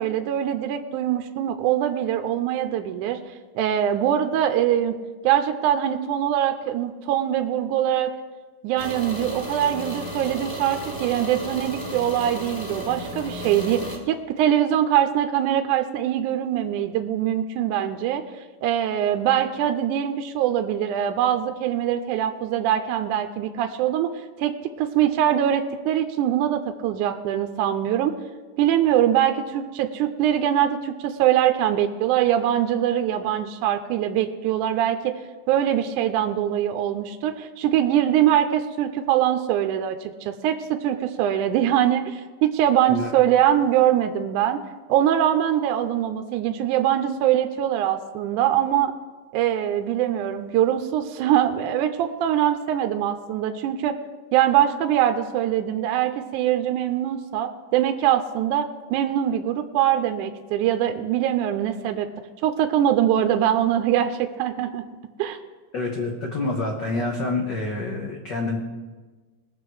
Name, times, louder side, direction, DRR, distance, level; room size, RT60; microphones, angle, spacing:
voice 1, 0.0-3.2 3.6-5.0 5.2-8.1 8.6-18.2 18.6-24.1 24.4-28.2 28.6-35.1 35.5-44.6 44.9-48.9 49.3-54.0 54.3-62.1 62.4-64.8 65.2-65.4, right 11 dB, 80° right, 7 dB, 1.9 m, -23 dB
sound 1, 8.8-14.0, right 1 dB, 15° left, 0.7 m, -34 dB
voice 2, 65.7-68.6, left 2 dB, 85° left, 0 dB, 0.9 m, -27 dB
20.0 x 6.8 x 4.7 m, 1.3 s
omnidirectional pair, 3.9 m